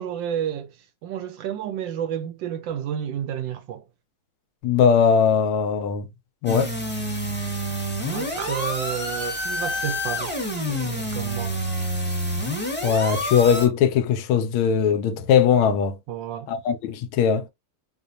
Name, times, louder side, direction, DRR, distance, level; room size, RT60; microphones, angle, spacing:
voice 1, 0.0-3.8 8.1-10.3 10.7-11.6 12.1-12.2 16.1-16.5, right 9 dB, 75° right, 1.1 m, -31 dB
voice 2, 4.6-6.1 6.4-6.7 12.8-16.0 16.5-17.5, left 7 dB, 80° left, 1.5 m, -20 dB
sound 1, 6.5-13.7, equal, 5° left, 0.9 m, -28 dB
4.9 x 2.2 x 2.6 m
omnidirectional pair, 2.3 m